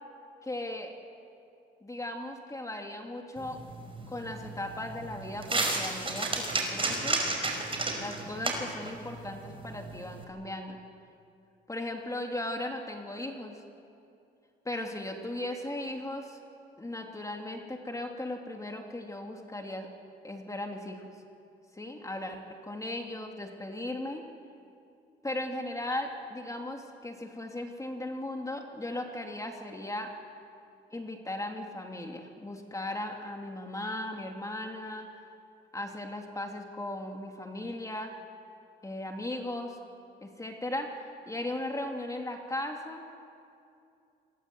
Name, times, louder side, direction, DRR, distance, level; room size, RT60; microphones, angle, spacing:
voice 1, 0.4-0.9 1.8-3.6 4.1-7.2 7.9-10.8 11.7-13.6 14.6-16.4 16.8-19.9 20.2-21.1 21.7-24.2 25.2-30.1 30.9-35.1 35.7-38.1 38.8-39.8 40.2-43.0, left 1 dB, 15° left, 2 dB, 2.9 m, -37 dB
sound 1, 3.4-10.2, right 2 dB, 25° right, 5.1 m, -33 dB
26.5 x 21.5 x 8.0 m, 2.5 s
cardioid pair, 90°, 20 cm